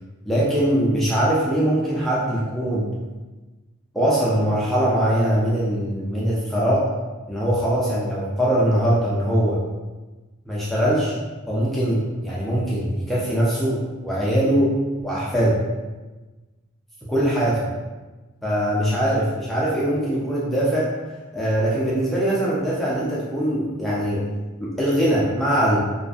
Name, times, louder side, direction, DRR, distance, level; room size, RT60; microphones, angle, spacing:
voice 1, 0.3-2.9 3.9-6.9 7.3-9.6 10.5-11.1 11.5-14.7 15.0-15.6 17.1-17.7 18.4-20.9 21.3-24.2 24.6-25.8, right 1 dB, ahead, -8 dB, 0.3 m, -22 dB
2.5 x 2.3 x 2.3 m, 1.2 s
head